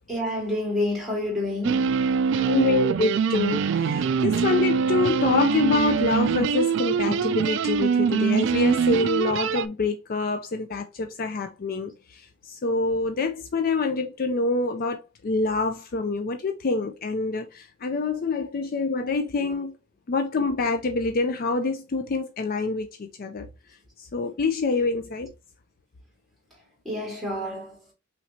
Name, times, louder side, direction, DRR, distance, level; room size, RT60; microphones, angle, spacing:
voice 1, 0.1-2.1 26.8-27.8, left 1 dB, ahead, 2.6 m, -28 dB
sound 1, 1.6-9.7, right 6 dB, 60° right, 0.3 m, -23 dB
voice 2, 2.3-19.8 20.1-23.5 24.0-25.3, left 3 dB, 45° left, 0.4 m, -26 dB
5.7 x 3.2 x 2.7 m
head